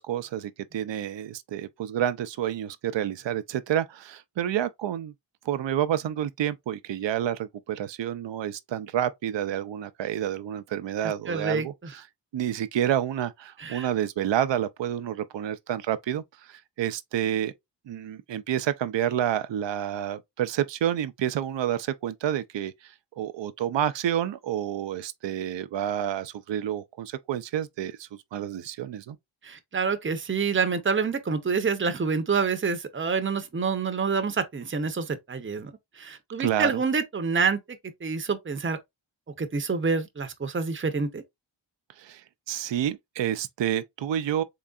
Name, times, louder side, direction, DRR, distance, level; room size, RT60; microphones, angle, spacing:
voice 1, 0.0-5.1 5.5-12.0 12.3-17.5 17.9-29.2 36.4-36.8 42.0-44.4, right 10 dB, 65° right, 0.5 m, -29 dB
voice 2, 11.0-11.9 13.6-13.9 29.4-37.6 38.0-38.8 39.4-41.2, right 5 dB, 25° right, 0.7 m, -27 dB
3.8 x 3.2 x 2.3 m
cardioid pair, 45°, 47 cm